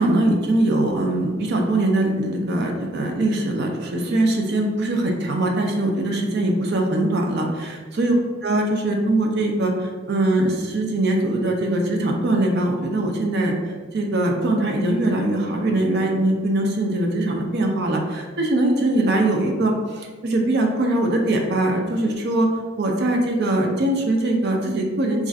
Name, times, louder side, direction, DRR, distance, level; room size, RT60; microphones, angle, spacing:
voice 1, 0.0-8.1 8.4-9.7 10.1-13.6 13.9-22.5 22.8-25.3, right 1 dB, 55° right, 2 dB, 0.5 m, -22 dB
2.5 x 2.4 x 4.1 m, 1.4 s
head